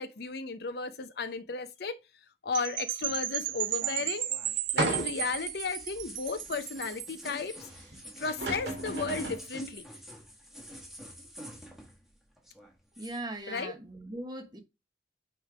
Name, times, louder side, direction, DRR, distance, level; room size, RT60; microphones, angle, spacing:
voice 1, 0.0-2.0 2.4-4.3 4.7-7.7 8.2-9.8 13.5-13.7, left 4 dB, 60° left, 0.6 m, -34 dB
Percussion / Wind chime, 2.5-7.2, right 12 dB, 50° right, 0.6 m, -34 dB
sound 1, 3.0-12.1 12.4-13.2, equal, ahead, 1.3 m, -48 dB
sound 2, 4.8-5.4 6.0-6.1 7.9-8.0 8.3-9.5, right 2 dB, 70° right, 2.4 m, -32 dB
voice 2, 13.0-14.6, right 2 dB, 25° right, 1.0 m, -39 dB
8.7 x 3.2 x 3.4 m
head